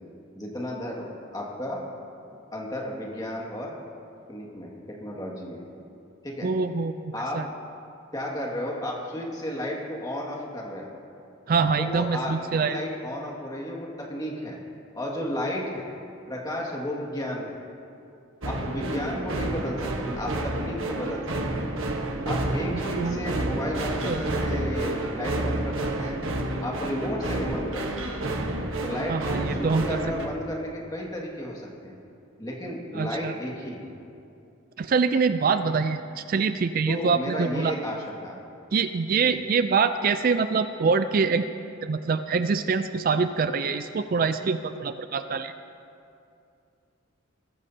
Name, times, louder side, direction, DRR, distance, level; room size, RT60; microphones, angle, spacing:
voice 1, 0.4-1.8 2.5-3.7 4.3-5.6 6.2-6.5 7.1-7.4 8.1-10.9 11.8-12.3 12.6-14.6 14.9-15.9 16.3-17.6 18.5-19.9 20.2-21.7 22.2-26.2 26.6-28.2 28.8-32.0 32.4-33.9 36.9-38.4 39.2-39.3, equal, 20° left, -2 dB, 2.0 m, -33 dB
voice 2, 6.4-7.5 11.5-12.8 18.8-18.9 23.0-23.4 24.1-24.4 29.1-30.0 33.0-33.3 34.8-37.7 38.7-41.5 41.8-45.5, right 5 dB, 45° right, 10 dB, 0.4 m, -25 dB
sound 1, 18.4-30.3, right 1 dB, 80° right, 1.3 m, -30 dB
21.0 x 14.0 x 2.8 m, 2.6 s
head